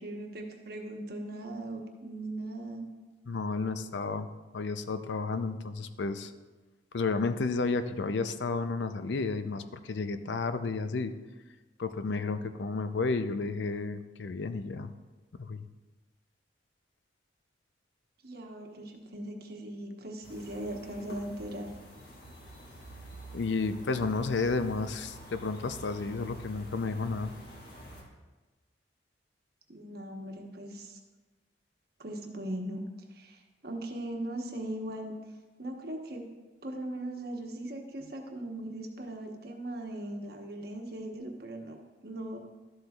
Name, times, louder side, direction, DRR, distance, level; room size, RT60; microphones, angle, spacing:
voice 1, 0.0-2.9 18.2-21.7 29.7-31.0 32.0-32.8 33.1-35.2 35.6-36.3 36.6-42.4, right 1 dB, 55° right, 2 dB, 1.1 m, -39 dB
voice 2, 3.3-6.3 6.9-11.1 11.8-14.9 15.4-15.6 23.3-27.3, left 4 dB, 70° left, 10 dB, 0.5 m, -32 dB
sound 1, 20.2-28.0, right 1 dB, 55° left, 1.7 m, -48 dB
12.5 x 7.9 x 2.4 m, 1.2 s
head